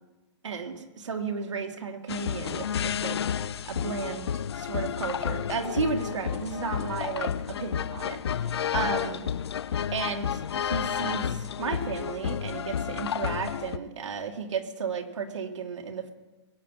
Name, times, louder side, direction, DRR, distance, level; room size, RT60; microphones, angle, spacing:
voice 1, 0.4-3.2 3.7-9.3 9.9-16.1, right 5 dB, 90° right, 5 dB, 2.0 m, -34 dB
sound 1, 2.1-13.8, left 8 dB, 60° left, 0.5 m, -31 dB
22.0 x 8.4 x 5.7 m, 1.2 s
hypercardioid pair, 180°, 15 cm